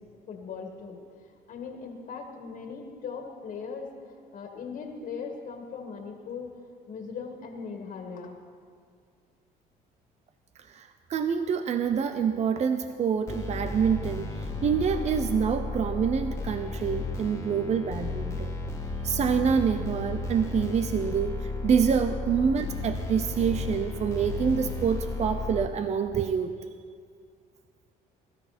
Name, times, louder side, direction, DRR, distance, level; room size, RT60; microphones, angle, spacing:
voice 1, 0.3-1.0 1.5-3.9 4.3-6.5 6.9-8.4, left 5 dB, 55° left, 2 dB, 2.1 m, -39 dB
voice 2, 10.7-14.3 14.6-18.5 19.0-21.4 21.6-26.5, right 7 dB, 40° right, 8 dB, 0.7 m, -26 dB
sound 1, 13.3-25.7, left 2 dB, 15° left, 1.9 m, -33 dB
22.0 x 12.5 x 4.4 m, 2.2 s
cardioid pair, 110°, 17 cm